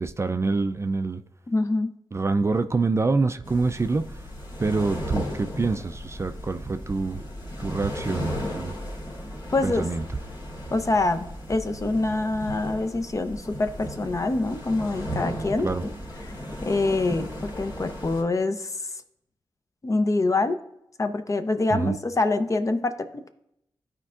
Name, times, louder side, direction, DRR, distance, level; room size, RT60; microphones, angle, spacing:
voice 1, 0.0-1.2 2.1-4.1 4.6-7.2 7.6-8.8 9.6-10.0 15.6-15.8 21.7-22.0, right 3 dB, 30° right, 0.4 m, -26 dB
voice 2, 1.5-1.9 9.5-9.9 10.7-15.7 16.2-16.3 16.6-18.7 19.8-20.6 21.0-23.3, left 2 dB, 35° left, 0.6 m, -25 dB
sound 1, 3.4-18.2, equal, 60° left, 2.6 m, -35 dB
12.5 x 4.5 x 2.4 m
cardioid pair, 55°, 9 cm